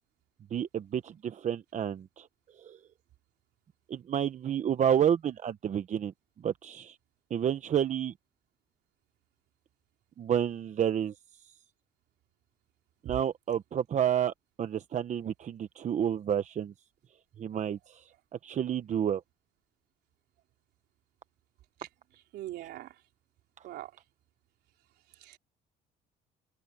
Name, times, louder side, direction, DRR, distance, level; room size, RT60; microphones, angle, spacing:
voice 1, 0.5-2.3 2.6-2.8 3.9-6.1 6.4-7.0 7.3-8.1 10.2-11.1 13.1-16.7 17.4-18.1 18.4-19.2, right 9 dB, 45° right, 1.0 m, -30 dB
voice 2, 22.3-23.0 23.6-23.9 25.2-25.4, right 14 dB, 80° right, 3.9 m, -41 dB
cardioid pair, 110°, 17 cm